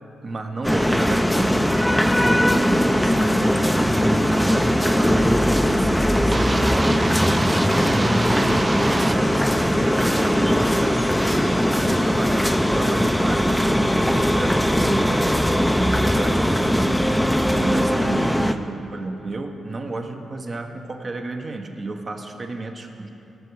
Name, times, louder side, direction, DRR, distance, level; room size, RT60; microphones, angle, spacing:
voice 1, 0.2-1.9 2.2-7.3 7.8-15.3 15.7-23.1, right 3 dB, 45° right, 4 dB, 1.4 m, -32 dB
sound 1, 0.6-18.5, equal, 5° left, 0.7 m, -20 dB
sound 2, 6.3-9.2, right 2 dB, 30° right, 0.6 m, -27 dB
19.0 x 7.0 x 4.9 m, 2.8 s
supercardioid pair, 50°, 0 cm